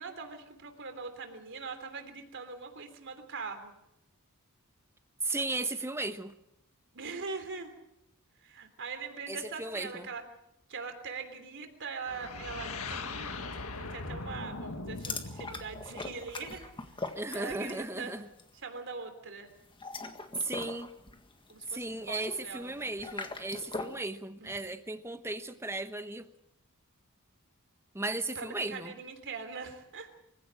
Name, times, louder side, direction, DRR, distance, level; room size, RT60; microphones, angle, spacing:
voice 1, 0.0-3.7 6.9-7.7 8.4-10.2 10.7-16.7 17.3-18.1 18.6-19.5 21.5-22.7 24.4-24.6 28.3-30.1, right 4 dB, 60° right, 3.3 m, -42 dB
voice 2, 5.2-6.3 9.3-10.1 17.1-18.3 20.4-20.9 21.7-26.3 27.9-28.9, right 2 dB, 10° right, 1.1 m, -36 dB
sound 1, 12.1-16.9, left 3 dB, 75° left, 1.9 m, -41 dB
sound 2, 15.0-17.9 18.2-18.5 19.6-24.0, left 3 dB, 25° left, 1.7 m, -41 dB
24.5 x 16.5 x 7.7 m
head